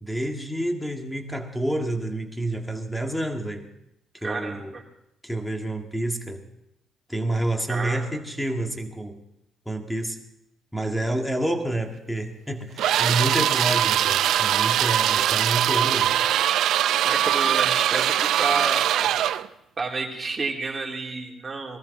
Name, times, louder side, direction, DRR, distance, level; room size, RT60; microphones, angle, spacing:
voice 1, 0.0-3.7 4.1-4.8 5.2-6.5 7.1-9.2 9.7-10.2 10.7-16.2, right 1 dB, 5° left, 4 dB, 2.0 m, -28 dB
voice 2, 4.2-4.8 7.7-8.2 17.0-19.2 19.8-21.8, right 4 dB, 25° right, -2 dB, 3.3 m, -30 dB
sound 1, 12.8-19.5, right 11 dB, 80° right, 0.5 m, -22 dB
20.0 x 13.5 x 4.2 m, 0.80 s
cardioid pair, 90°, 0 cm